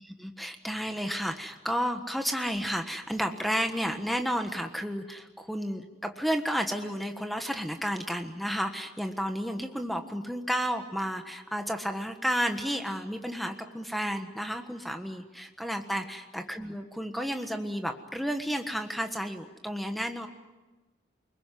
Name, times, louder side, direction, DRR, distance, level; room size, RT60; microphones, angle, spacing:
voice 1, 0.0-20.3, equal, ahead, 5 dB, 1.4 m, -32 dB
29.5 x 20.5 x 9.4 m, 1.2 s
head